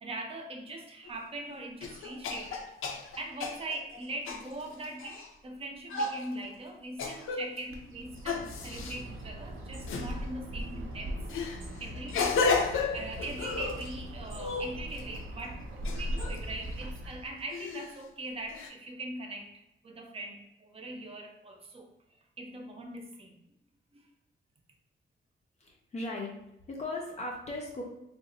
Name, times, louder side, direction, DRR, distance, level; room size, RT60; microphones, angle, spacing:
voice 1, 0.0-2.6 3.2-11.2 11.8-12.4 12.9-19.5 19.8-21.9 22.4-23.4, right 2 dB, 30° right, 2 dB, 0.5 m, -41 dB
sound 1, 1.1-1.2 1.8-5.3 5.9-6.3 7.0-7.6 8.2-9.0 9.9-10.1 11.3-13.9 14.3-15.2 15.8-16.4 17.5-18.0 18.5-18.7, left 4 dB, 90° left, 0.4 m, -33 dB
Bird, 7.7-17.4, equal, 85° right, 0.6 m, -40 dB
voice 2, 25.6-26.3 26.7-27.8, left 2 dB, 35° left, -1 dB, 0.5 m, -37 dB
2.9 x 2.1 x 3.7 m, 0.86 s
wide cardioid pair, 175°, 20 cm